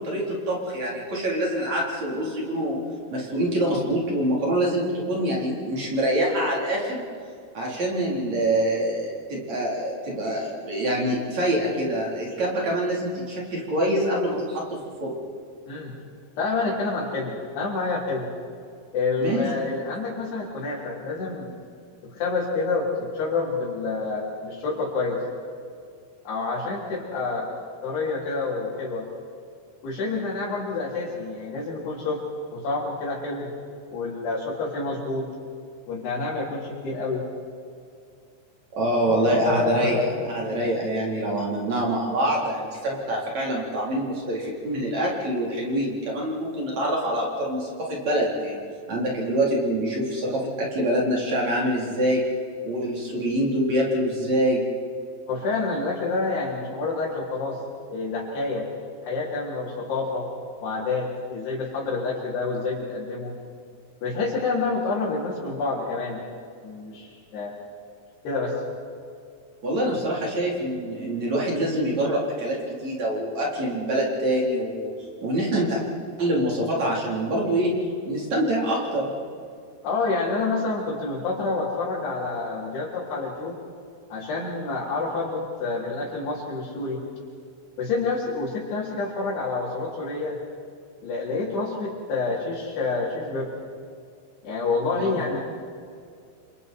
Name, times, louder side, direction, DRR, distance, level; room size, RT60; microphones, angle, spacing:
voice 1, 0.0-2.8 3.1-7.0 7.5-15.2 19.2-19.5 38.7-40.0 40.3-48.6 48.9-52.2 52.6-54.6 69.6-74.9 75.2-75.8 76.2-77.7 78.1-79.1 95.0-95.1, right 1 dB, 40° right, -3 dB, 5.2 m, -25 dB
voice 2, 16.4-18.3 18.9-21.5 22.0-25.2 26.3-27.5 27.8-29.1 29.8-32.2 32.5-33.5 33.9-35.3 35.9-37.2 39.0-40.3 55.3-57.6 57.9-58.7 59.0-60.3 60.6-63.3 64.0-66.2 66.6-67.6 68.2-68.6 79.8-83.6 84.1-87.0 87.8-90.4 91.0-93.5 94.4-95.4, left 3 dB, 70° left, -8 dB, 5.8 m, -28 dB
28.5 x 27.0 x 4.7 m, 2.3 s
omnidirectional pair, 4.9 m